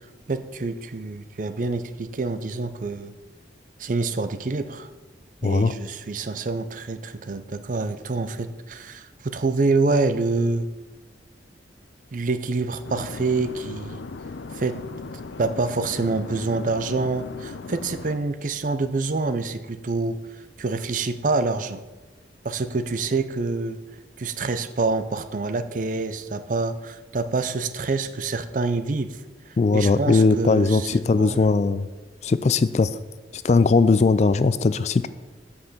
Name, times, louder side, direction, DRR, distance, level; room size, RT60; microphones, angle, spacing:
voice 1, 0.3-3.1 3.8-4.9 5.4-10.7 12.1-14.0 14.5-14.8 15.4-20.2 20.6-21.8 22.4-23.8 24.2-29.2 29.5-30.9 31.2-31.4, right 3 dB, 45° right, 10 dB, 0.5 m, -26 dB
voice 2, 5.4-5.7 29.6-31.9 32.2-32.9 33.4-35.1, left 4 dB, 40° left, 14 dB, 0.3 m, -19 dB
sound 1, 12.8-18.2, left 3 dB, 90° left, 0.5 m, -37 dB
8.1 x 5.5 x 6.6 m, 1.2 s
head